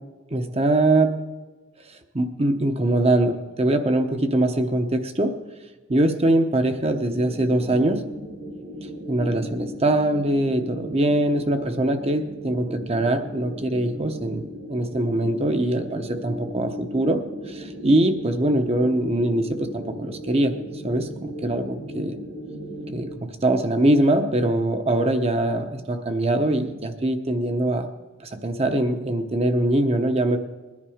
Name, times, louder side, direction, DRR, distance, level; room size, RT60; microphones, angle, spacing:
voice 1, 0.3-1.2 2.1-5.4 5.9-8.1 9.1-14.4 14.7-17.2 17.5-20.6 20.8-22.2 22.9-27.9 28.4-30.4, right 1 dB, 30° right, 7 dB, 0.9 m, -22 dB
sound 1, 7.0-23.1, equal, 55° right, 2.0 m, -37 dB
21.0 x 10.5 x 5.1 m, 1.2 s
head